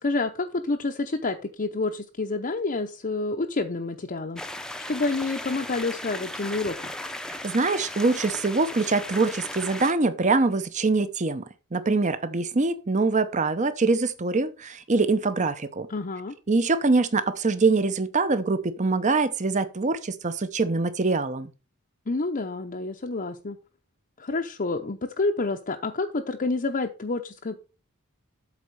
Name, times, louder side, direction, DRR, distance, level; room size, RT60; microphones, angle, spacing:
voice 1, 0.0-4.6 4.9-6.9 15.9-16.3 22.1-23.6 24.2-27.6, left 3 dB, 40° left, 0.7 m, -28 dB
sound 1, 4.4-9.9, left 1 dB, 5° left, 0.7 m, -36 dB
voice 2, 7.4-11.4 11.7-15.9 16.5-21.5, right 3 dB, 35° right, 0.7 m, -24 dB
8.3 x 4.1 x 6.8 m
head